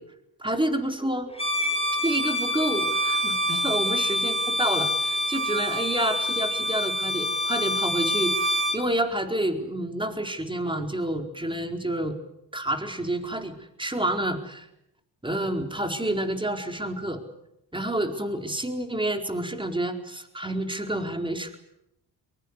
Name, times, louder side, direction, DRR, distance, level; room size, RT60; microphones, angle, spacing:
voice 1, 0.4-1.3 2.0-12.2 12.5-14.7 15.2-17.2 17.7-21.5, right 1 dB, 10° right, 5 dB, 4.4 m, -29 dB
Bowed string instrument, 1.3-8.8, left 1 dB, 15° left, 4.4 m, -26 dB
23.0 x 21.5 x 9.8 m, 0.85 s
supercardioid pair, 65°, 40 cm